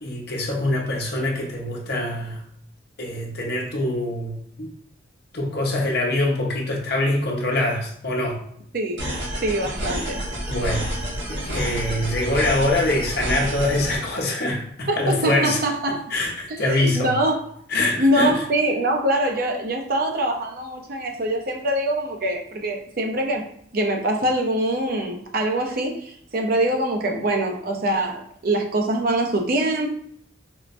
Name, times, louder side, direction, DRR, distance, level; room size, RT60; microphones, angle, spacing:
voice 1, 0.0-2.4 3.0-4.7 5.3-8.4 10.5-11.0 11.3-15.6 16.1-17.1 17.7-18.4, left 1 dB, 55° left, 0 dB, 0.7 m, -24 dB
voice 2, 8.7-9.1 9.4-10.2 14.9-16.0 16.5-17.4 18.0-23.5 23.7-29.9, right 1 dB, 45° right, 2 dB, 0.5 m, -24 dB
sound 1, 9.0-14.0, equal, 70° right, 1.2 m, -29 dB
4.5 x 2.1 x 2.5 m, 0.67 s
head